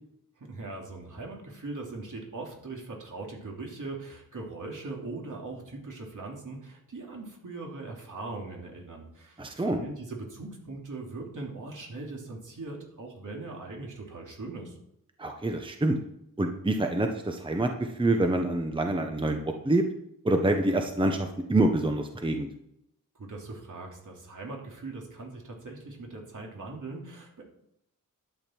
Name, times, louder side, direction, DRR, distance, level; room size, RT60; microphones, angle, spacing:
voice 1, 0.4-14.7 23.2-27.4, right 3 dB, 60° right, 0 dB, 3.0 m, -40 dB
voice 2, 9.4-9.8 15.2-16.0 16.4-19.8 20.2-22.5, right 2 dB, 15° right, 4 dB, 1.0 m, -26 dB
11.5 x 8.8 x 4.5 m, 0.78 s
wide cardioid pair, 130°, 35 cm